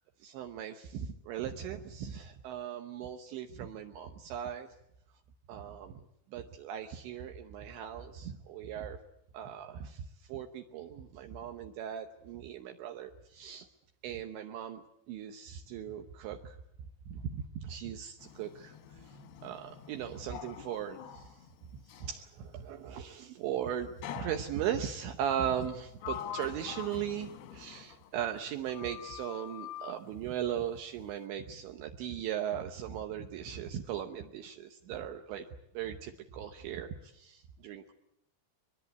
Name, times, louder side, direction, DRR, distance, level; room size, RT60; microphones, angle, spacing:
voice 1, 0.2-4.7 5.5-6.0 6.3-9.0 9.3-10.0 10.3-13.7 14.0-16.6 17.1-18.8 19.4-21.4 21.9-23.9 24.1-35.5 35.7-37.9, right 9 dB, 75° right, 5 dB, 3.1 m, -38 dB
Sliding door, 18.2-22.2 24.0-24.9 25.6-28.4 28.7-30.0, left 10 dB, 75° left, 2.4 m, -45 dB
23.5 x 22.0 x 8.2 m, 0.81 s
omnidirectional pair, 5.8 m